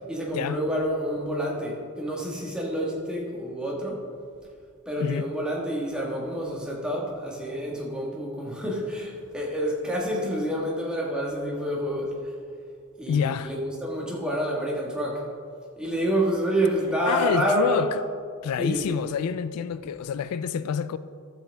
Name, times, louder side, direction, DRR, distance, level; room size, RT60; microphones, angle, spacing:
voice 1, 0.1-4.0 4.8-12.1 13.0-15.2 15.8-17.9 18.6-19.1, right 1 dB, 5° right, 1.5 m, -28 dB
voice 2, 5.0-5.3 13.1-13.5 17.1-18.1 18.4-21.0, left 7 dB, 90° left, 0.3 m, -27 dB
13.0 x 7.6 x 3.5 m
head